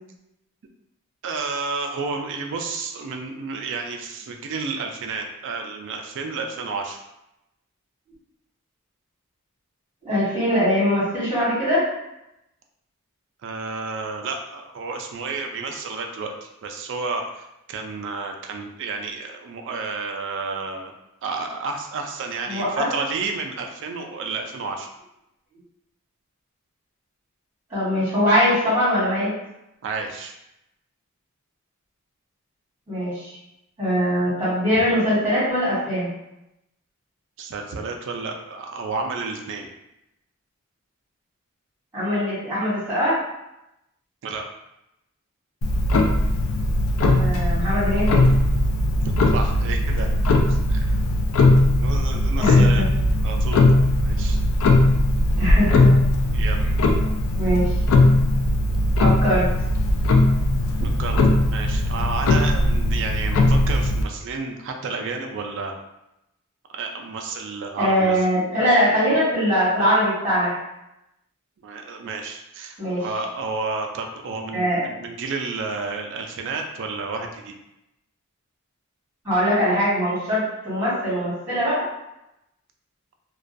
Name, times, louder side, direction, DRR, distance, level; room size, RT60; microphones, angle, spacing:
voice 1, 1.2-7.0 13.4-20.9 21.2-24.9 29.8-30.3 34.7-34.8 37.4-39.7 44.2-44.4 49.0-50.9 51.7-52.8 53.2-53.7 54.0-54.4 56.3-56.6 60.8-61.2 61.5-65.7 66.7-68.2 71.6-77.5, right 4 dB, 55° right, 3 dB, 0.3 m, -31 dB
voice 2, 10.0-11.8 22.5-22.9 27.7-29.3 32.9-33.4 33.8-36.1 41.9-43.1 47.1-48.2 52.4-52.8 55.4-55.9 57.4-57.8 59.0-59.4 67.8-70.5 72.8-73.0 74.5-74.8 79.2-81.8, equal, 10° right, -10 dB, 1.1 m, -22 dB
Clock, 45.6-64.0, left 1 dB, 65° left, 0.3 m, -19 dB
2.3 x 2.2 x 2.5 m, 0.88 s
head